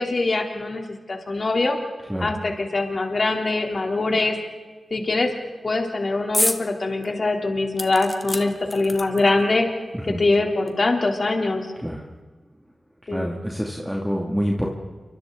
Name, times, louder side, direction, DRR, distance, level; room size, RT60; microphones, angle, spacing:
voice 1, 0.0-1.8 2.2-4.4 4.9-5.3 5.6-9.7 10.2-11.7 13.1-13.3, left 2 dB, 55° left, 1 dB, 3.6 m, -23 dB
sound 1, 6.3-6.6 7.0-7.1 7.8-9.4 10.3-10.4 10.7-10.8, left 1 dB, 15° left, 1.7 m, -27 dB
voice 2, 13.1-14.7, equal, 5° right, -1 dB, 2.7 m, -26 dB
28.5 x 25.0 x 4.1 m, 1.4 s
cardioid pair, 60°, 0 cm